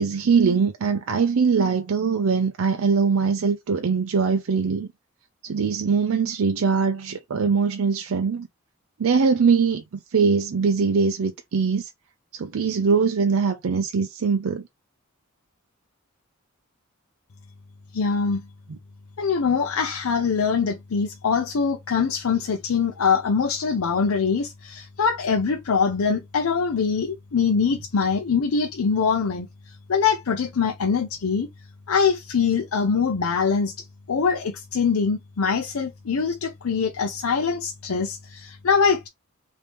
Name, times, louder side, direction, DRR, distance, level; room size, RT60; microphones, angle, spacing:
voice 1, 0.0-4.9 5.4-8.5 9.0-9.8 10.1-11.9 12.3-14.6 18.7-18.8, right 5 dB, 75° right, 0.5 m, -22 dB
voice 2, 17.9-18.4 19.2-31.5 31.9-33.7 34.1-39.1, left 5 dB, 85° left, 0.6 m, -23 dB
3.4 x 2.7 x 3.0 m
head